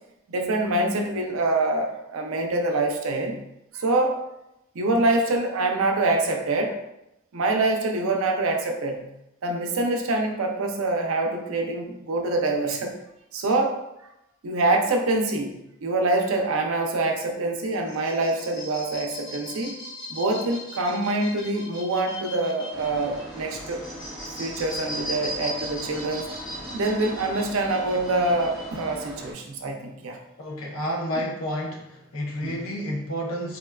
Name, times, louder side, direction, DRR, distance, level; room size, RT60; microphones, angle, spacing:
voice 1, 0.3-3.4 3.7-4.2 4.7-6.8 7.3-9.0 9.4-12.9 13.3-13.8 14.4-15.6 15.8-19.8 20.1-23.8 24.4-26.3 26.7-30.2 32.4-32.5, right 2 dB, 75° right, 2 dB, 0.5 m, -25 dB
sound 1, 17.7-29.0, equal, 20° left, 0.7 m, -38 dB
sound 2, 22.7-29.3, right 1 dB, ahead, 0.4 m, -41 dB
voice 2, 30.4-33.6, equal, 80° left, -1 dB, 0.7 m, -30 dB
3.6 x 2.3 x 2.2 m, 0.87 s
head